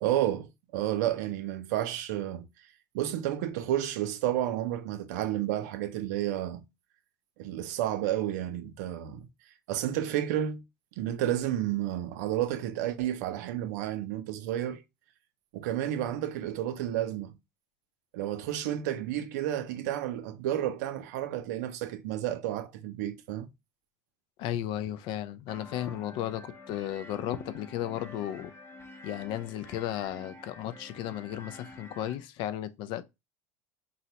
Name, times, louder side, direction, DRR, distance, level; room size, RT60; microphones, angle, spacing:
voice 1, 0.0-2.4 2.9-6.6 7.4-9.3 9.7-10.6 11.0-14.8 15.5-17.3 18.1-23.5, right 12 dB, 80° right, 0.5 m, -31 dB
voice 2, 24.4-28.5 29.0-33.0, left 12 dB, 60° left, 0.4 m, -34 dB
sound 1, 25.5-32.1, left 2 dB, 25° left, 0.8 m, -48 dB
4.0 x 2.0 x 2.8 m
supercardioid pair, 90°, 9 cm